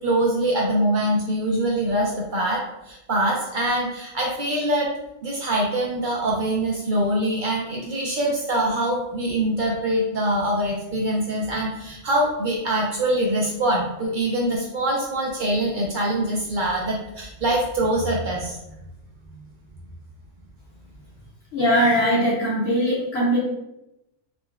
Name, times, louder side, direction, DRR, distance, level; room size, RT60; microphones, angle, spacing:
voice 1, 0.0-4.9 5.2-18.6, right 1 dB, 70° right, -2 dB, 0.4 m, -24 dB
voice 2, 21.5-23.4, equal, 60° left, -6 dB, 0.9 m, -20 dB
3.7 x 2.0 x 2.2 m, 0.88 s
omnidirectional pair, 1.3 m